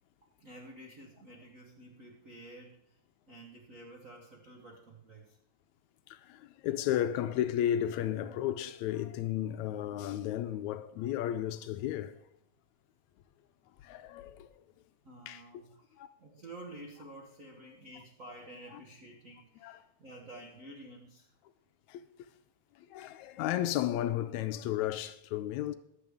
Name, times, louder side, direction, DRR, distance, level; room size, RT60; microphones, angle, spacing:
voice 1, 0.4-3.0 3.3-5.4 15.0-21.3, right 1 dB, 80° right, 0.7 m, -50 dB
voice 2, 6.1-12.2 13.8-14.5 15.3-15.6 16.0-16.1 18.7-18.8 19.6-19.8 21.9-22.0 22.9-25.7, left 12 dB, 80° left, 1.9 m, -33 dB
15.0 x 11.0 x 3.5 m
omnidirectional pair, 3.4 m